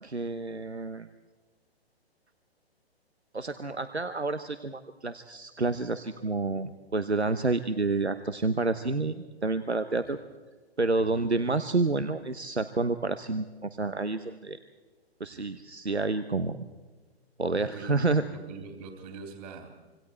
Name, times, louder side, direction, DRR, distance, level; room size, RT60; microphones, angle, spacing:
voice 1, 0.0-1.1 3.3-10.2 10.8-14.6 15.2-16.6 17.4-18.2, right 3 dB, 90° right, 10 dB, 1.1 m, -29 dB
voice 2, 11.0-11.3 15.3-15.5 17.5-19.7, right 4 dB, 45° right, 4 dB, 3.4 m, -44 dB
26.0 x 25.5 x 4.5 m, 1.3 s
figure-of-eight pair, 125°, 32 cm